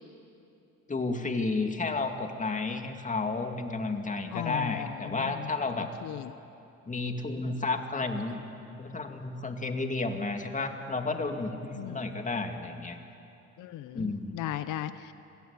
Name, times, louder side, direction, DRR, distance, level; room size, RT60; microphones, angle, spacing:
voice 1, 0.9-5.9 6.9-8.5 8.8-13.0 13.9-14.4, left 3 dB, 25° left, 5 dB, 2.2 m, -32 dB
voice 2, 4.3-5.5 6.0-6.3 11.7-12.0 13.6-15.1, left 12 dB, 85° left, 12 dB, 0.7 m, -36 dB
26.5 x 18.0 x 8.2 m, 2.8 s
cardioid pair, 90°, 30 cm